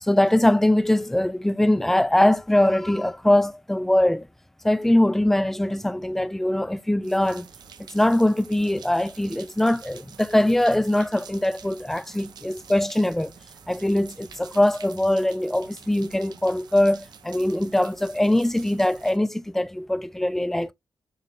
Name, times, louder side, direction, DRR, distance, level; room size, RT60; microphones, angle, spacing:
voice 1, 0.0-4.3 4.6-7.5 7.8-13.3 13.7-20.7, left 1 dB, 5° left, 0.3 m, -22 dB
sound 1, 7.0-19.2, right 7 dB, 70° right, 0.6 m, -47 dB
6.7 x 3.1 x 2.3 m
cardioid pair, 105°, 7 cm